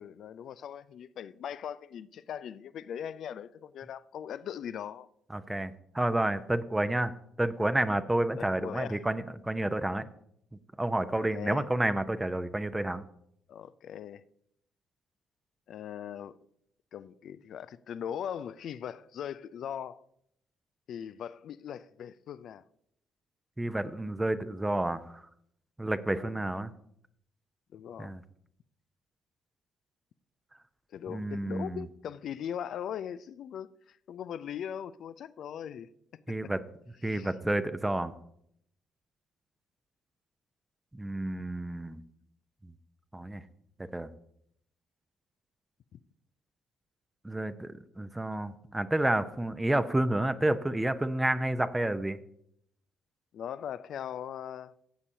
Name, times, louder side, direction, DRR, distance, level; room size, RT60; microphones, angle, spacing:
voice 1, 0.0-5.1 8.4-9.0 11.1-11.6 13.5-14.2 15.7-16.4 16.9-20.0 20.9-22.6 26.1-26.4 27.7-28.1 30.9-36.5 37.0-37.3 45.9-46.0 53.3-54.7, left 9 dB, 60° left, 0.4 m, -40 dB
voice 2, 5.3-10.1 10.8-13.0 23.6-25.2 25.8-26.7 28.0-28.2 31.1-31.9 36.3-36.6 37.0-38.1 40.9-42.0 43.1-43.4 43.9-44.1 47.2-52.2, right 1 dB, 15° right, 0.7 m, -30 dB
17.0 x 8.3 x 2.7 m
figure-of-eight pair, 45°, 0 cm